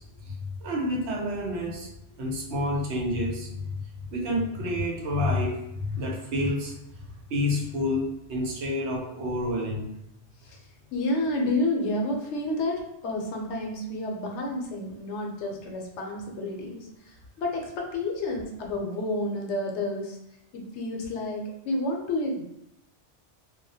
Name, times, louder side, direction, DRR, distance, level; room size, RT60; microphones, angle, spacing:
voice 1, 0.6-1.9 2.2-3.5 4.1-6.8 7.3-9.8, left 1 dB, 70° right, -1 dB, 0.9 m, -28 dB
voice 2, 10.9-16.9 17.4-20.2 20.5-22.5, left 1 dB, 75° left, 1 dB, 0.9 m, -30 dB
2.2 x 2.0 x 2.6 m, 0.81 s
omnidirectional pair, 1.2 m